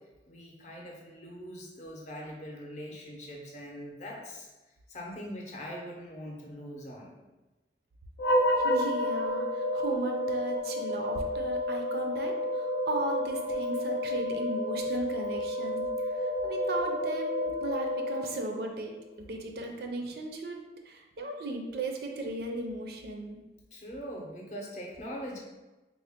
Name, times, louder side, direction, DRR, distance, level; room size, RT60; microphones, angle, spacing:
voice 1, 0.3-4.5 4.9-7.2 23.7-25.4, equal, 40° left, -1 dB, 0.6 m, -42 dB
sound 1, 8.2-18.7, left 1 dB, 85° left, 0.4 m, -30 dB
voice 2, 8.6-20.6 20.9-23.4, right 2 dB, 60° right, 3 dB, 0.4 m, -36 dB
3.7 x 2.0 x 3.5 m, 1.1 s
head